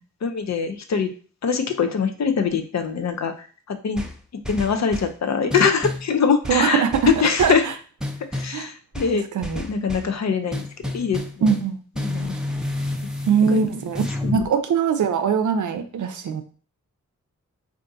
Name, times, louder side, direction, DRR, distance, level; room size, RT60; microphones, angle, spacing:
voice 1, 0.2-1.1 1.4-4.0 4.5-7.7 8.3-9.2 9.5-10.7 10.9-11.5 12.0-12.4 13.5-13.6 14.2-14.5, left 6 dB, 60° left, 6 dB, 0.5 m, -23 dB
sound 1, 4.0-5.2 5.5-6.1 6.4-7.6 8.0-8.6 8.9-10.1 10.5-11.7 11.9-14.5, left 1 dB, ahead, 0.5 m, -30 dB
voice 2, 6.5-7.1 7.4-7.5 8.5-8.7 9.3-9.6 11.4-11.8 13.3-14.0 14.3-16.4, right 6 dB, 75° right, 9 dB, 0.5 m, -21 dB
3.6 x 2.5 x 2.6 m, 0.41 s
cardioid pair, 40°, 30 cm